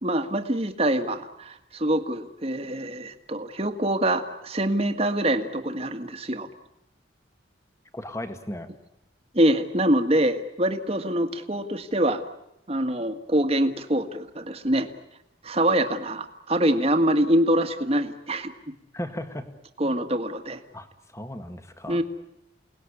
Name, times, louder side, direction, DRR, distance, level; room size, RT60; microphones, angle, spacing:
voice 1, 0.0-6.5 9.3-12.2 12.7-14.9 15.4-18.5 19.8-20.6 21.9-22.0, right 1 dB, 30° right, 7 dB, 1.8 m, -24 dB
voice 2, 7.9-8.7 18.9-19.5 20.7-20.9 21.1-22.0, left 1 dB, 15° left, 8 dB, 1.8 m, -35 dB
29.0 x 19.0 x 10.0 m, 0.85 s
head